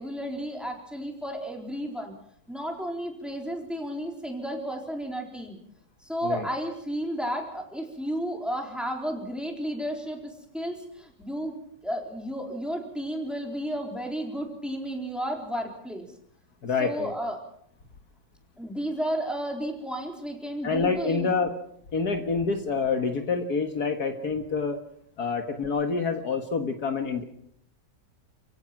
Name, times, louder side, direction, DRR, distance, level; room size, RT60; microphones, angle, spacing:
voice 1, 0.0-2.1 2.5-5.6 6.0-11.6 11.8-16.1 16.8-17.4 18.6-21.3, equal, ahead, 1 dB, 4.1 m, -32 dB
voice 2, 16.6-17.1 20.6-21.5 21.9-24.8 25.2-27.2, left 4 dB, 60° left, 5 dB, 2.0 m, -27 dB
30.0 x 16.5 x 6.0 m, 0.70 s
omnidirectional pair, 1.9 m